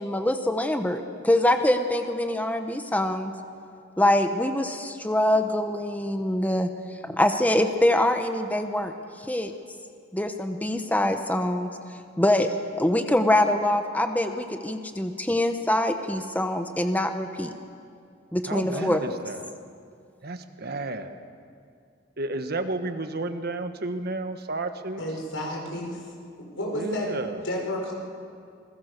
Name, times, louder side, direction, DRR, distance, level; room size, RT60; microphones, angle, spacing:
voice 1, 0.0-3.3 4.0-6.7 7.0-8.9 9.3-9.5 10.1-11.7 12.2-12.5 12.8-17.5 18.3-19.2, left 1 dB, 10° left, 6 dB, 1.0 m, -24 dB
voice 2, 18.5-19.4 20.2-21.2 22.2-25.0 26.7-27.4, right 2 dB, 55° right, 8 dB, 1.4 m, -32 dB
voice 3, 25.0-26.0 26.5-27.2 27.4-27.9, left 1 dB, 90° left, 0 dB, 5.9 m, -31 dB
27.5 x 21.5 x 6.7 m, 2.3 s
head